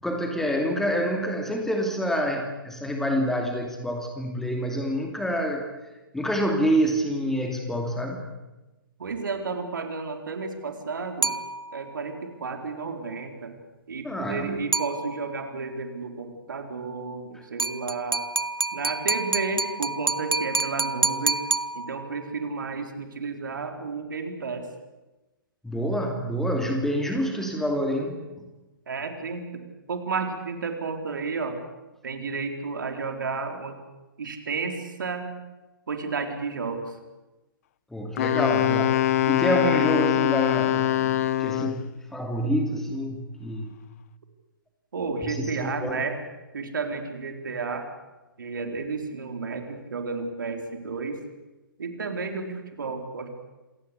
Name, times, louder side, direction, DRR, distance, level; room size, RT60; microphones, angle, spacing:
voice 1, 0.0-5.7 6.1-8.3 14.0-14.6 17.3-17.4 25.6-28.5 37.9-43.7 45.2-46.0, equal, 5° left, 3 dB, 2.7 m, -27 dB
voice 2, 9.0-11.3 11.7-13.5 13.9-18.3 18.7-21.4 21.7-24.7 28.9-29.6 29.9-31.6 32.0-33.8 34.2-35.3 35.9-37.0 44.9-46.2 46.5-47.8 48.4-51.2 51.8-53.3, right 4 dB, 60° right, 5 dB, 4.2 m, -32 dB
sound 1, 11.2-12.0 14.7-15.5 17.6-22.3, right 3 dB, 85° right, 0.8 m, -28 dB
Wind instrument woodwind instrument, 38.2-41.9, left 12 dB, 40° left, 0.8 m, -23 dB
27.0 x 18.0 x 8.4 m, 1.1 s
figure-of-eight pair, 125°, 12 cm